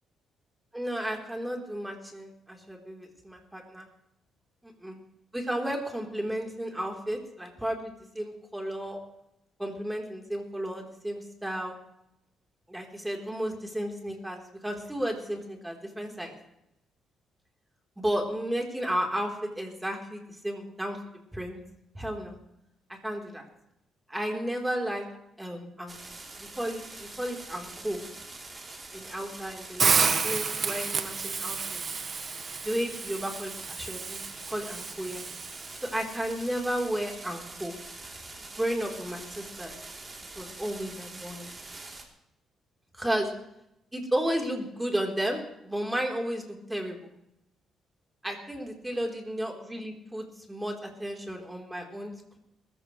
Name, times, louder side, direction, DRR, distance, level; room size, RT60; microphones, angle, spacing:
voice 1, 0.7-3.9 4.8-5.0 5.3-9.0 9.6-11.7 12.7-16.4 18.0-21.0 21.3-21.6 21.9-22.3 22.9-23.5 24.1-25.0 25.4-25.9 26.5-28.0 28.9-30.0 30.2-31.8 32.6-34.2 34.5-35.2 35.8-37.7 38.6-39.8 40.4-41.5 42.9-43.3 43.9-47.0 48.2-52.4, equal, 10° right, 1 dB, 3.8 m, -33 dB
sound 1, 25.9-42.0, right 2 dB, 25° right, 3.3 m, -44 dB
Hiss, 29.8-35.9, right 5 dB, 45° right, 1.4 m, -30 dB
21.5 x 14.5 x 3.2 m, 0.82 s
cardioid pair, 90°, 0 cm